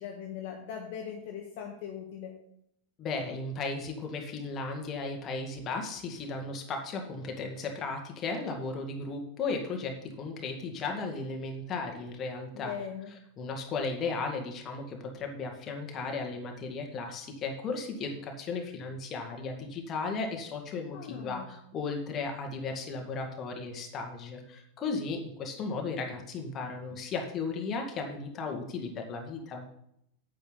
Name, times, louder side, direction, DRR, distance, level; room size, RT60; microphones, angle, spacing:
voice 1, 0.0-2.3 12.5-13.1 20.9-21.5, left 8 dB, 50° left, 1 dB, 1.4 m, -40 dB
voice 2, 3.0-12.7 13.4-29.7, left 4 dB, 30° left, 3 dB, 2.0 m, -35 dB
9.1 x 8.9 x 4.0 m, 0.74 s
figure-of-eight pair, 90°, 0 cm